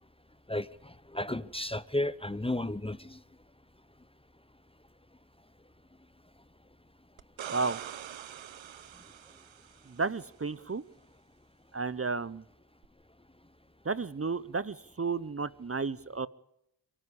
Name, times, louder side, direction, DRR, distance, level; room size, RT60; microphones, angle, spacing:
voice 1, 0.5-3.2, left 1 dB, 10° left, 0.8 m, -33 dB
sound 1, 7.2-10.0 12.8-12.9, right 10 dB, 90° right, 0.9 m, -44 dB
voice 2, 7.5-7.8 9.9-10.8 11.7-12.4 13.8-16.3, right 4 dB, 30° right, 0.8 m, -32 dB
28.5 x 10.0 x 9.8 m
cardioid pair, 50°, 45 cm